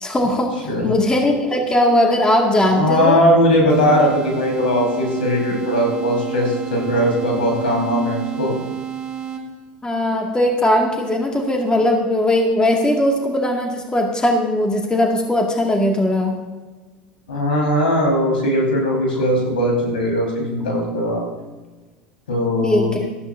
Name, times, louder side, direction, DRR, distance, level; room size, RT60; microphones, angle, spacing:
voice 1, 0.0-3.2 9.8-16.4 22.6-23.1, left 1 dB, 15° left, 1 dB, 2.0 m, -19 dB
voice 2, 0.6-1.0 2.6-8.5 17.3-21.2 22.3-23.0, equal, 85° left, -1 dB, 4.4 m, -19 dB
sound 1, 3.7-9.7, right 9 dB, 15° right, 2.6 m, -31 dB
18.0 x 13.5 x 2.7 m, 1.3 s
hypercardioid pair, 80°, 5 cm